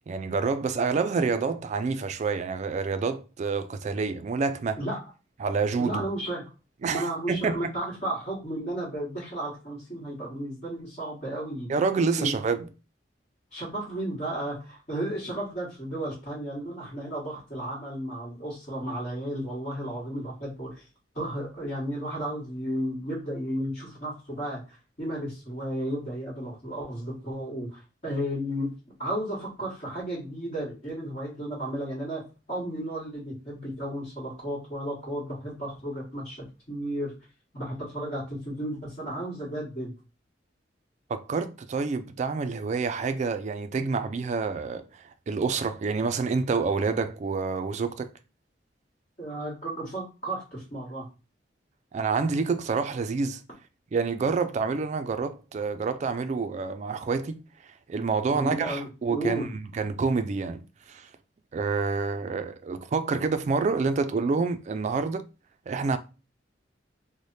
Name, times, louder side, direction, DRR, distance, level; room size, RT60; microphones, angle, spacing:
voice 1, 0.1-4.8 5.4-6.1 6.8-7.7 11.7-12.7 41.1-48.1 51.9-53.4 53.9-57.4 57.9-59.5 59.7-61.1 61.5-65.2 65.7-66.0, right 4 dB, 40° right, 0.3 m, -28 dB
voice 2, 5.8-6.4 6.9-11.7 12.2-12.4 13.5-20.8 21.1-28.7 29.0-32.2 32.5-37.1 37.5-39.9 49.2-51.1 58.3-59.5, right 1 dB, 40° left, 1.4 m, -33 dB
3.2 x 2.1 x 4.0 m
head